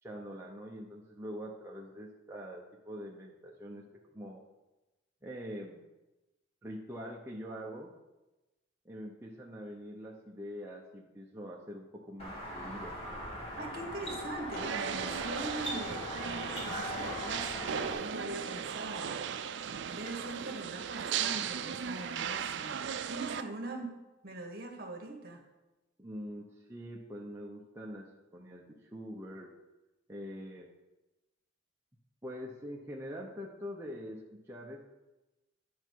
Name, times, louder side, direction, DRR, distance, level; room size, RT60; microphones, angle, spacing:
voice 1, 0.0-3.8 4.1-4.4 5.2-5.8 6.6-7.9 8.8-13.0 26.0-29.5 30.1-30.7 32.2-34.9, equal, 15° right, -3 dB, 0.8 m, -44 dB
sound 1, 12.2-17.9, equal, 30° left, 2.1 m, -40 dB
voice 2, 13.6-19.2 19.6-23.9 24.2-25.4, right 2 dB, 50° right, 2 dB, 1.6 m, -42 dB
sound 2, 14.6-23.4, right 7 dB, 65° right, 0.4 m, -37 dB
10.5 x 5.8 x 4.6 m, 1.0 s
head